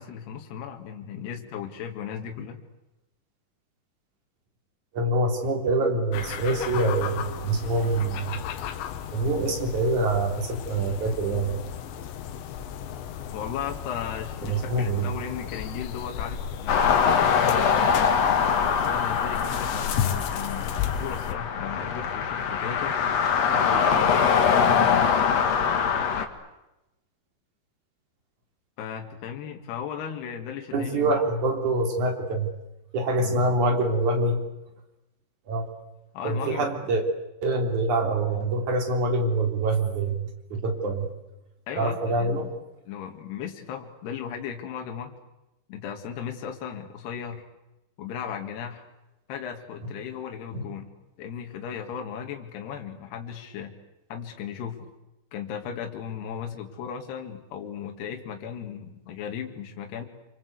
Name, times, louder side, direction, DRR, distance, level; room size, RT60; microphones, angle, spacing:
voice 1, 0.0-2.6 13.3-17.8 18.7-23.0 23.5-25.2 28.8-31.1 36.1-36.8 41.7-42.5 42.9-45.1 45.7-47.4 48.0-48.9 49.3-50.9 51.2-53.7 54.1-54.9 55.3-60.1, left 8 dB, 70° left, 3 dB, 4.0 m, -36 dB
voice 2, 4.9-8.4 9.1-11.6 14.4-15.1 30.7-32.5 32.9-34.4 35.5-35.7 36.2-37.0 37.4-40.2 40.5-41.1 41.8-42.5 50.5-50.6, right 2 dB, 45° right, 4 dB, 4.4 m, -25 dB
sound 1, 6.1-21.4, left 9 dB, 85° left, 3.8 m, -34 dB
sound 2, 16.7-26.3, left 7 dB, 50° left, 2.3 m, -23 dB
28.5 x 24.5 x 8.2 m, 0.96 s
omnidirectional pair, 5.0 m